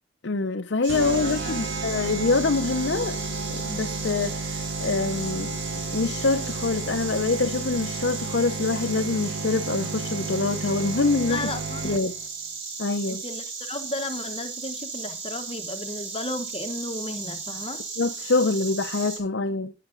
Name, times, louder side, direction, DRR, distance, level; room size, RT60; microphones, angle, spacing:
voice 1, 0.2-3.2 3.5-4.5 4.8-11.5 11.8-12.1 12.8-13.2 18.0-19.7, left 3 dB, 65° left, 0.7 m, -25 dB
Insect, 0.8-19.2, right 4 dB, 90° right, 5.4 m, -36 dB
sound 1, 0.9-12.3, right 3 dB, 65° right, 0.9 m, -33 dB
voice 2, 1.1-1.7 11.3-12.0 13.1-17.8, left 2 dB, 30° left, 1.1 m, -34 dB
13.0 x 10.0 x 3.8 m
head